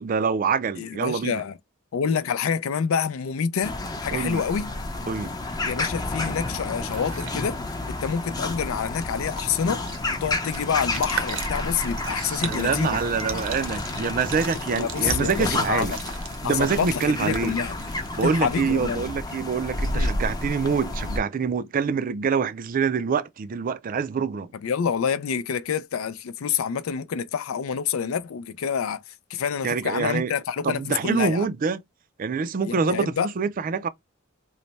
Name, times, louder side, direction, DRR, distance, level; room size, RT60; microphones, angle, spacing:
voice 1, 0.0-1.4 4.1-4.4 5.1-5.3 12.0-15.9 16.4-17.6 18.2-24.5 29.6-30.3 30.6-31.8 32.2-33.9, right 5 dB, 40° right, 0.4 m, -26 dB
voice 2, 0.8-1.5 1.9-4.7 5.7-7.6 7.9-9.8 10.2-13.0 14.8-16.0 16.4-17.8 18.2-19.1 19.9-20.1 24.6-31.5 32.6-33.3, left 7 dB, 80° left, 0.4 m, -27 dB
sound 1, 3.6-21.2, left 2 dB, 20° left, 0.6 m, -30 dB
sound 2, 6.8-7.4 8.8-8.9 9.1-18.7, right 7 dB, 70° right, 0.8 m, -38 dB
3.2 x 2.1 x 4.0 m
head